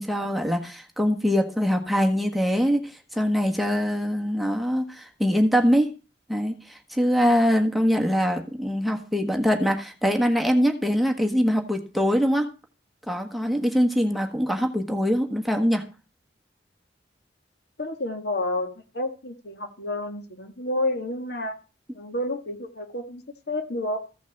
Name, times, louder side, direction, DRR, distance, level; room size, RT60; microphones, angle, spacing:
voice 1, 0.0-5.9 6.3-12.5 13.1-15.9, equal, ahead, 2 dB, 1.4 m, -23 dB
voice 2, 17.8-18.7 18.9-21.6 21.9-24.0, left 1 dB, 60° left, 6 dB, 1.8 m, -30 dB
15.0 x 6.0 x 7.1 m, 0.33 s
head